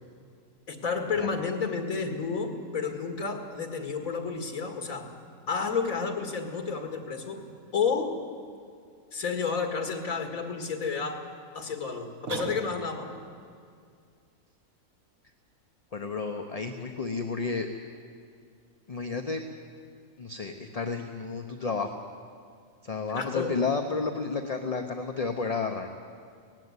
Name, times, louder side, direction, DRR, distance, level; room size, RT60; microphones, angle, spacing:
voice 1, 0.7-5.1 5.5-7.4 7.7-8.2 9.1-11.2 11.5-13.2 23.1-23.5, left 5 dB, 80° left, 5 dB, 2.3 m, -31 dB
sound 1, 12.3-13.2, right 4 dB, 75° right, 1.7 m, -36 dB
voice 2, 15.9-17.7 18.9-19.4 20.2-21.9 22.8-25.9, left 4 dB, 30° left, 5 dB, 0.8 m, -31 dB
18.0 x 15.0 x 9.7 m, 2.2 s
omnidirectional pair, 1.4 m